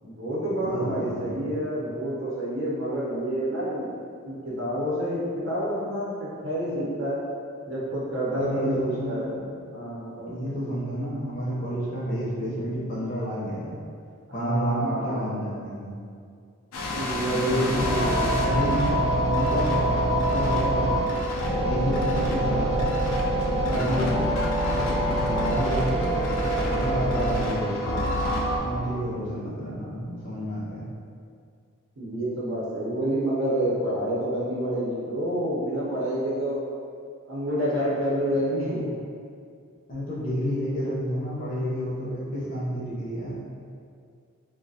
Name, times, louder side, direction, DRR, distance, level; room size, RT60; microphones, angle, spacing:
voice 1, 0.0-4.0 4.3-7.2 7.7-9.3 9.7-10.3 14.3-15.3 16.9-18.3 23.5-24.0 26.9-27.4 32.0-36.6 37.3-38.9, right 1 dB, 60° right, -8 dB, 0.7 m, -28 dB
voice 2, 0.6-1.5 8.3-9.4 10.2-13.8 14.3-16.0 17.3-21.1 21.6-23.0 23.6-24.4 24.7-26.2 26.6-28.1 28.6-30.8 39.9-43.5, equal, 40° left, -8 dB, 0.6 m, -30 dB
sound 1, 16.7-28.6, equal, 85° left, 0.4 m, -25 dB
2.3 x 2.1 x 2.6 m, 2.3 s
head